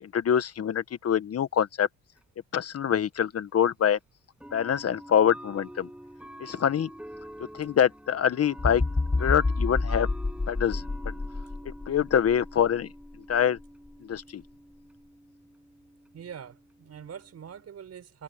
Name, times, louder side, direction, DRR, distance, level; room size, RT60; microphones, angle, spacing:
voice 1, 0.0-1.9 2.5-4.0 4.5-5.9 6.4-6.9 7.5-8.8 9.1-10.1 10.5-11.2 11.6-12.9 13.3-13.6 14.0-14.4, left 9 dB, 55° left, 1.4 m, -25 dB
sound 1, 2.2-2.3 3.4-3.5 4.4-17.6, equal, 5° right, 7.0 m, -47 dB
sound 2, 8.6-12.6 13.1-13.3, left 3 dB, 20° left, 5.7 m, -29 dB
voice 2, 16.1-18.2, right 8 dB, 55° right, 6.0 m, -43 dB
cardioid pair, 90°, 30 cm